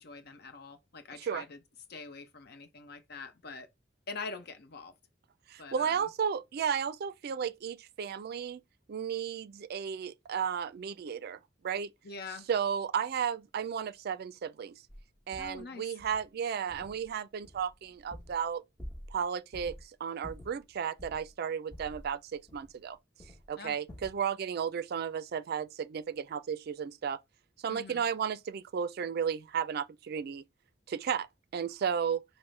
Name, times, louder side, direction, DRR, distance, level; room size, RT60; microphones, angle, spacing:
voice 1, 0.0-1.6 1.9-3.7 4.1-5.0 5.6-6.1 12.0-12.5 15.4-15.9 23.6-23.8 27.7-28.0, left 4 dB, 60° left, 0.8 m, -44 dB
voice 2, 5.5-8.6 8.9-11.4 11.6-11.9 12.5-14.8 15.3-18.6 19.1-19.8 20.0-23.0 23.5-27.2 27.6-30.4 30.9-31.3 31.5-32.2, right 7 dB, 55° right, 0.3 m, -33 dB
sound 1, 14.9-15.0 15.3-15.6 16.0-16.3 16.7-17.1 17.4-18.5 18.8-19.2 19.5-19.8 20.2-21.3 21.7-22.9 23.2-23.5 23.9-24.2, equal, 10° left, 1.2 m, -48 dB
5.3 x 2.1 x 3.2 m
head